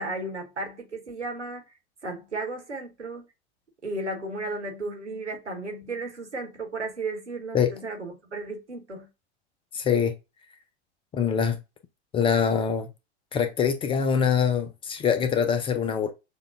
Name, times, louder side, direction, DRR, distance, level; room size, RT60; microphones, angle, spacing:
voice 1, 0.0-1.6 2.0-3.3 3.8-9.1, right 2 dB, 90° right, 1.2 m, -34 dB
voice 2, 9.7-10.1 11.1-11.6 12.1-12.9 13.3-16.1, left 7 dB, 15° left, 0.4 m, -24 dB
6.4 x 2.3 x 2.4 m
figure-of-eight pair, 95°, 34 cm